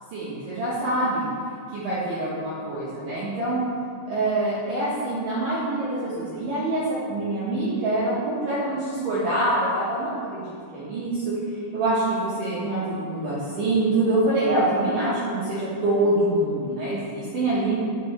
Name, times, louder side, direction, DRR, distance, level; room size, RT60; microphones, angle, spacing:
voice 1, 0.1-1.3 1.7-3.6 4.1-11.3 11.7-17.7, right 2 dB, 70° right, -9 dB, 2.1 m, -25 dB
8.7 x 5.7 x 3.2 m, 2.3 s
omnidirectional pair, 5.3 m